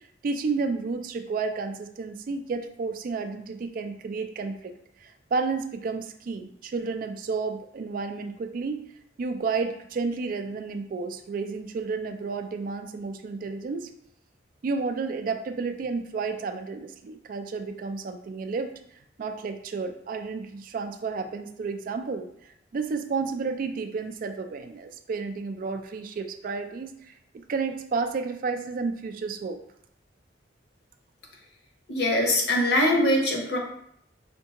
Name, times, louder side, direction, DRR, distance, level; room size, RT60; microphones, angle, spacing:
voice 1, 0.2-4.7 5.0-8.8 9.2-13.9 14.6-18.7 19.2-22.3 22.7-29.6, right 4 dB, 50° right, 7 dB, 0.3 m, -31 dB
voice 2, 31.9-33.6, left 1 dB, 65° left, 0 dB, 0.9 m, -22 dB
5.2 x 2.3 x 2.8 m, 0.71 s
head